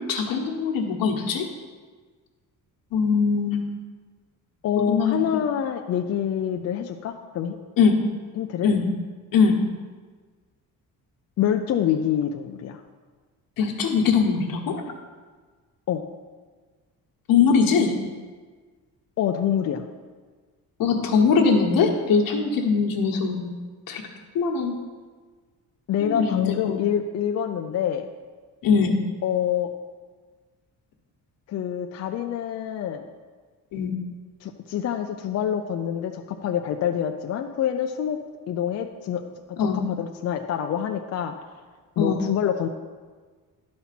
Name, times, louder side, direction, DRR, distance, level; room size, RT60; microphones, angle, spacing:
voice 1, 0.0-1.5 2.9-3.6 4.7-5.2 7.8-8.0 8.6-8.8 9.3-9.6 13.6-14.8 17.3-18.0 20.8-23.5 23.9-24.0 24.3-24.8 26.0-26.8 28.6-29.0 33.7-33.9 39.6-39.8 42.0-42.2, left 5 dB, 75° left, 1 dB, 1.3 m, -21 dB
voice 2, 4.6-7.6 8.4-8.7 11.4-12.8 15.9-16.0 19.2-19.9 25.9-28.1 29.2-29.7 31.5-33.0 34.4-38.2 38.5-39.2 39.9-41.3 42.0-42.7, left 9 dB, 45° left, 4 dB, 0.4 m, -26 dB
11.0 x 4.3 x 5.9 m, 1.5 s
cardioid pair, 165°, 35 cm